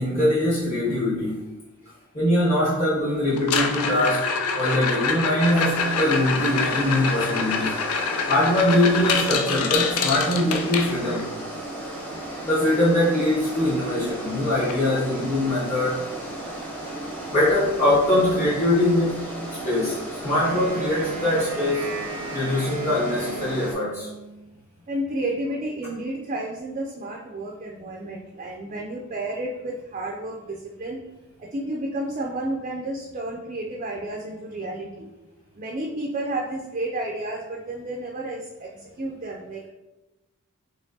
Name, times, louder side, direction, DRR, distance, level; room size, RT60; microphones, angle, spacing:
voice 1, 0.0-1.5 2.1-4.3 4.5-7.8 8.3-11.3 12.4-16.0 17.3-19.3 19.6-22.0 22.3-24.1, left 1 dB, 30° left, -9 dB, 0.9 m, -22 dB
sound 1, 3.4-11.3 13.6-13.7 13.9-14.3 14.7-14.8 15.4-15.5 17.4-17.5, left 5 dB, 80° left, 0.5 m, -26 dB
sound 2, 5.4-23.7, right 1 dB, 10° left, 0.7 m, -35 dB
Wind instrument woodwind instrument, 20.3-24.5, right 3 dB, 85° right, 0.7 m, -37 dB
voice 2, 24.9-31.0 31.4-35.1 35.6-39.7, right 1 dB, 35° right, 0 dB, 0.4 m, -31 dB
4.3 x 3.2 x 2.7 m, 1.1 s
head